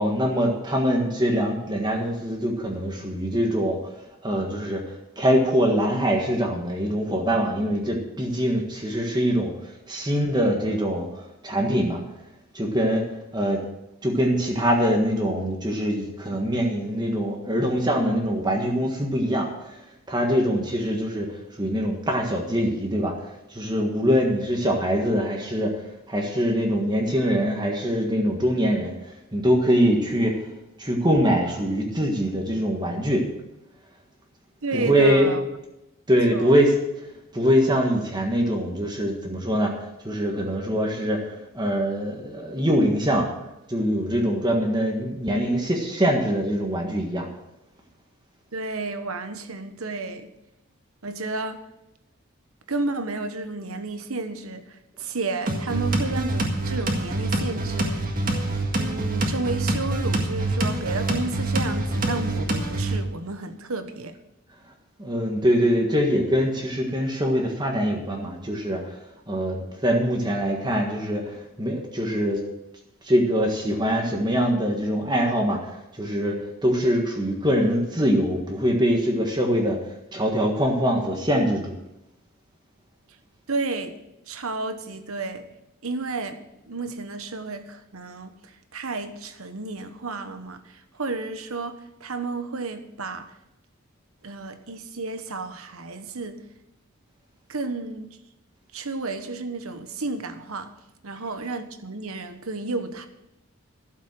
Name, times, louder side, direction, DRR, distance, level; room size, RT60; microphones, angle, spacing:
voice 1, 0.0-12.0 12.5-13.0 13.3-13.6 14.0-23.1 23.5-30.4 30.8-33.3 34.7-35.4 36.1-37.1 37.3-43.3 43.7-47.3 65.0-69.0 69.3-72.4 73.0-79.8 80.1-81.8, equal, 20° right, 1.5 m, -23 dB
voice 2, 34.6-35.4 36.3-36.5 48.5-50.3 51.0-51.6 52.7-58.0 58.8-64.2 83.5-83.9 84.3-85.5 85.8-86.4 86.7-93.3 94.2-96.4 97.5-98.2 98.7-100.7 101.0-103.1, right 3 dB, 80° right, 1.2 m, -32 dB
sound 1, 55.5-63.0, right 2 dB, 40° right, 1.9 m, -26 dB
12.5 x 7.4 x 7.6 m
head